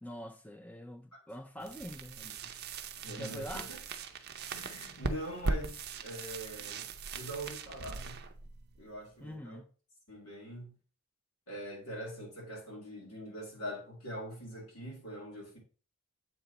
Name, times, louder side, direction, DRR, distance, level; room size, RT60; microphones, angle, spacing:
voice 1, 0.0-2.5 3.2-3.7 9.2-9.7, equal, 5° left, 0.4 m, -45 dB
sound 1, 1.6-9.4, right 4 dB, 45° right, 0.5 m, -40 dB
voice 2, 3.0-3.8 4.5-6.9 7.1-8.2 8.8-9.6 10.1-10.7 11.5-15.6, equal, 80° left, 2.7 m, -43 dB
7.8 x 3.3 x 4.1 m
head